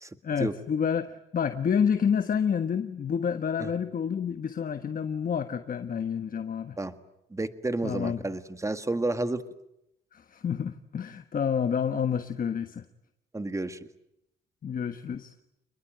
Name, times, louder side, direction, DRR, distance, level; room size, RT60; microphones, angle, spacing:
voice 1, 0.2-6.8 7.8-8.2 10.1-12.8 14.6-15.3, left 7 dB, 45° left, 10 dB, 1.3 m, -29 dB
voice 2, 7.3-9.4 13.3-13.8, right 2 dB, 15° right, 11 dB, 1.8 m, -30 dB
28.0 x 21.5 x 9.0 m, 0.82 s
cardioid pair, 90°, 20 cm